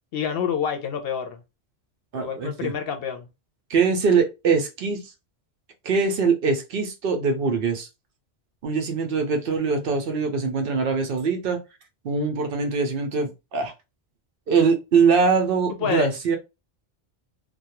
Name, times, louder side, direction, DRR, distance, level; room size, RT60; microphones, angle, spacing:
voice 1, 0.1-1.4 2.2-3.3 15.7-16.1, left 7 dB, 70° left, 0.7 m, -27 dB
voice 2, 2.1-2.7 3.7-5.1 5.8-7.9 8.6-11.6 12.0-13.7 14.5-16.4, right 5 dB, 65° right, 0.7 m, -22 dB
2.3 x 2.1 x 2.8 m
omnidirectional pair, 1.1 m